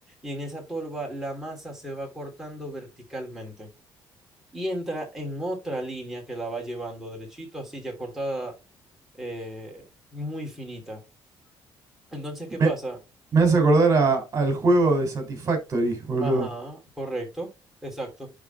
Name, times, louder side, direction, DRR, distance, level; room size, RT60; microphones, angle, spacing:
voice 1, 0.2-3.7 4.5-8.5 9.2-9.8 10.1-11.0 12.1-13.0 16.2-17.5 17.8-18.3, right 1 dB, 5° right, 2.9 m, -34 dB
voice 2, 13.3-16.5, right 3 dB, 35° right, 3.4 m, -21 dB
10.5 x 3.8 x 3.5 m
cardioid pair, 145°, 9 cm